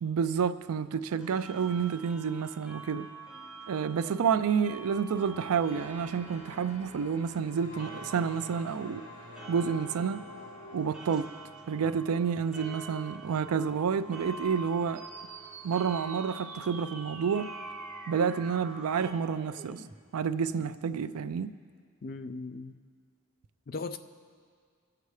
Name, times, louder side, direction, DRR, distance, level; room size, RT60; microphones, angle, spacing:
voice 1, 0.0-3.1 3.7-9.1 9.5-10.2 10.7-11.3 11.7-15.1 15.6-17.5 18.1-19.8 20.1-21.5, right 6 dB, 85° right, 12 dB, 0.4 m, -29 dB
sound 1, 1.2-19.1, right 3 dB, 5° right, 0.8 m, -46 dB
sound 2, 5.1-11.0, left 2 dB, 85° left, 1.4 m, -47 dB
sound 3, 15.0-20.0, right 4 dB, 30° right, 0.6 m, -48 dB
voice 2, 22.0-22.7 23.7-24.0, left 3 dB, 40° left, 10 dB, 0.3 m, -37 dB
20.0 x 6.7 x 3.2 m, 2.1 s
head